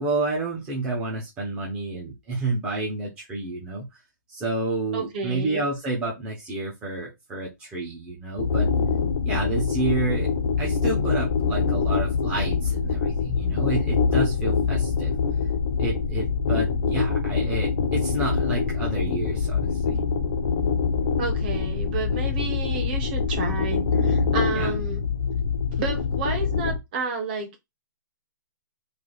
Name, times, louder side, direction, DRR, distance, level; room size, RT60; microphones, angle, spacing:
voice 1, 0.0-4.0 4.3-8.7 9.2-10.3 10.6-15.1 15.8-20.0 24.5-24.8, right 2 dB, 10° right, 0.6 m, -30 dB
voice 2, 4.9-5.6 21.2-25.0 25.8-27.6, right 5 dB, 25° right, 0.9 m, -31 dB
sound 1, 8.4-26.8, left 5 dB, 40° left, 0.6 m, -24 dB
3.3 x 2.4 x 3.8 m
hypercardioid pair, 175°, 11 cm